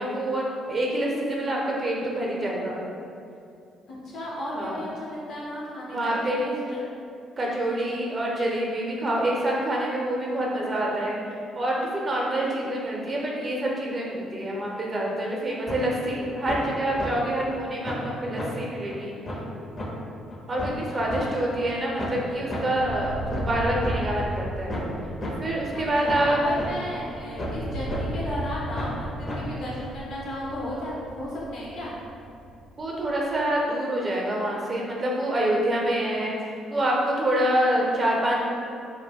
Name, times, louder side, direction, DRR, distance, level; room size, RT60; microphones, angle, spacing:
voice 1, 0.0-2.8 4.5-4.8 5.9-6.5 7.4-11.2 11.5-19.2 20.5-24.8 25.4-26.4 32.8-36.4 36.7-38.4, right 1 dB, 35° right, -2 dB, 0.6 m, -26 dB
voice 2, 4.0-6.8 7.3-7.5 20.9-21.6 25.7-31.9, left 1 dB, 70° left, -6 dB, 0.8 m, -35 dB
sound 1, 15.7-15.8 16.2-16.6 17.0-17.1 17.5-17.6 17.8-18.1 18.4-18.5 18.9-19.0 19.3-19.4 19.8-19.9 20.3-21.2 21.6-21.7 22.0-22.2 22.5-22.6 23.0-23.9 24.3-24.4 24.7-24.9 25.2-25.3 25.7-25.8 26.1-26.3 26.6-26.7 27.1-27.6 27.9-28.0 28.4-28.5 28.8-29.0 29.3-29.4 29.8-29.9, left 1 dB, 35° left, 0.6 m, -32 dB
sound 2, 20.9-22.4 22.7-33.4, equal, 90° right, 0.3 m, -37 dB
2.1 x 2.1 x 3.5 m, 2.5 s
supercardioid pair, 65°, 0 cm